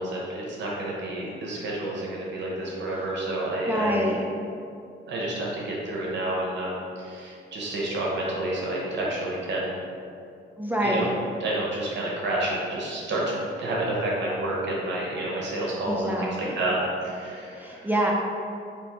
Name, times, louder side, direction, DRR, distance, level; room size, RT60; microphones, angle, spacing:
voice 1, 0.0-4.1 5.1-9.8 10.8-11.1 11.4-17.9, right 1 dB, 65° right, -4 dB, 1.0 m, -29 dB
voice 2, 3.7-4.2 10.6-11.1 15.8-16.6 17.5-18.1, equal, 10° right, -2 dB, 0.4 m, -26 dB
3.4 x 2.9 x 4.6 m, 2.5 s
cardioid pair, 90°, 20 cm